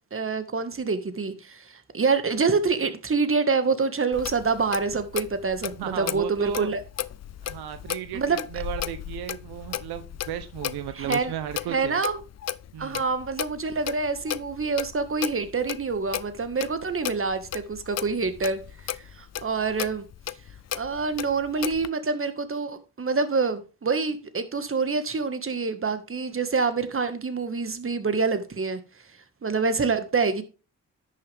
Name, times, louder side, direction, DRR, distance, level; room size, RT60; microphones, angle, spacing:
voice 1, 0.1-6.8 8.1-8.4 11.0-11.3 11.7-12.2 12.8-18.6 18.9-20.0 20.7-28.8 29.4-30.4, right 4 dB, 35° right, 1.6 m, -26 dB
Clock, 4.1-21.9, left 11 dB, 45° left, 0.5 m, -35 dB
voice 2, 5.8-6.7 7.4-12.0 12.7-13.0, right 11 dB, 75° right, 0.8 m, -34 dB
10.5 x 6.5 x 3.4 m
supercardioid pair, 55°, 38 cm